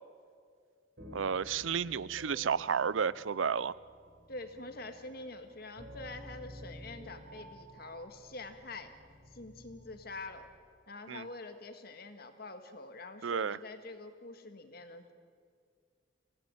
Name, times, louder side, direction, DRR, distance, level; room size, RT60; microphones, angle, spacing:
sound 1, 1.0-10.6, equal, 60° right, 4.7 m, -52 dB
voice 1, 1.1-3.7 11.1-11.3 13.2-13.6, right 6 dB, 85° right, 20 dB, 0.5 m, -32 dB
voice 2, 4.3-8.9 9.3-10.5 10.9-15.1, left 2 dB, 50° left, 7 dB, 1.8 m, -46 dB
25.0 x 17.5 x 8.0 m, 2.2 s
head